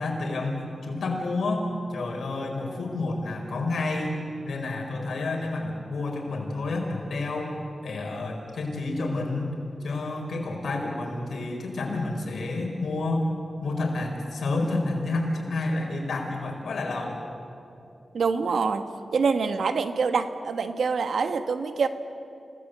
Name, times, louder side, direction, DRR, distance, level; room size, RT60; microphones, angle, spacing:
voice 1, 0.0-4.2 4.4-7.5 7.8-9.5 9.8-13.3 13.6-17.2, left 2 dB, 90° left, 1 dB, 4.7 m, -29 dB
voice 2, 18.1-18.9 19.1-21.9, right 5 dB, 85° right, 9 dB, 1.2 m, -25 dB
29.0 x 18.0 x 8.1 m, 2.7 s
wide cardioid pair, 85°, 0 cm